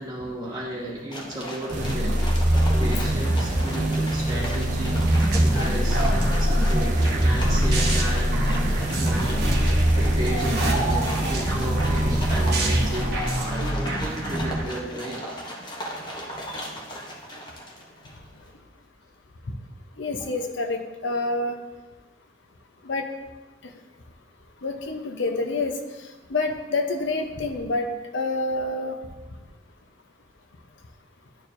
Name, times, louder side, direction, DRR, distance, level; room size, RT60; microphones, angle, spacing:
voice 1, 0.0-2.2 2.5-8.4 9.0-15.3 20.1-20.4, right 1 dB, 20° right, -6 dB, 1.6 m, -34 dB
sound 1, 1.1-18.3, equal, 25° left, 0.9 m, -37 dB
sound 2, 1.7-13.6, right 1 dB, 40° right, 0.7 m, -23 dB
sound 3, 5.0-14.6, right 1 dB, 55° right, 1.2 m, -28 dB
voice 2, 20.0-21.6 22.8-23.0 24.6-25.8 26.3-27.9 28.1-29.0, left 2 dB, 80° left, 4 dB, 0.8 m, -27 dB
11.0 x 4.4 x 2.6 m, 1.2 s
head